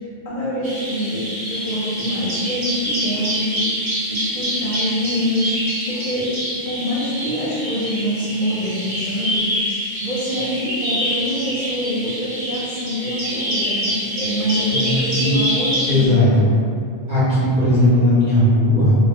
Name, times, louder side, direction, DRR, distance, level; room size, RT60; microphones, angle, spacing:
voice 1, 0.2-5.6 5.9-6.3 6.5-9.4 10.0-16.3, equal, 45° left, -8 dB, 0.6 m, -25 dB
Bird vocalization bird call bird song, 0.6-16.1, equal, 80° right, 1.0 m, -26 dB
voice 2, 14.7-15.3 15.8-16.5 17.1-19.0, left 1 dB, 50° right, -11 dB, 0.8 m, -17 dB
2.1 x 2.1 x 3.4 m, 2.4 s
omnidirectional pair, 1.1 m